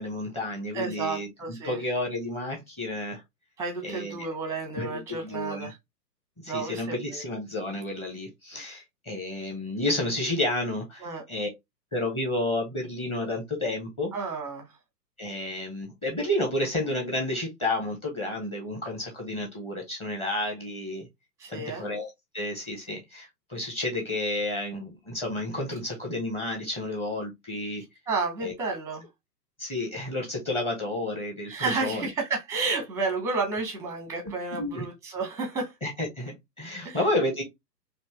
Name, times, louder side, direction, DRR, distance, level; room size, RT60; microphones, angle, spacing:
voice 1, 0.0-3.2 3.8-4.3 4.8-5.7 6.4-11.5 11.9-14.1 15.2-21.1 21.5-27.8 28.4-28.5 29.6-32.1 34.5-34.8 35.8-37.4, left 1 dB, 10° left, 1.1 m, -31 dB
voice 2, 0.7-1.8 3.6-5.8 6.5-7.2 11.0-11.2 14.1-14.7 21.4-21.9 28.1-29.1 31.5-35.7 36.8-37.0, right 3 dB, 5° right, 0.8 m, -31 dB
4.2 x 2.7 x 3.2 m
figure-of-eight pair, 115°, 49 cm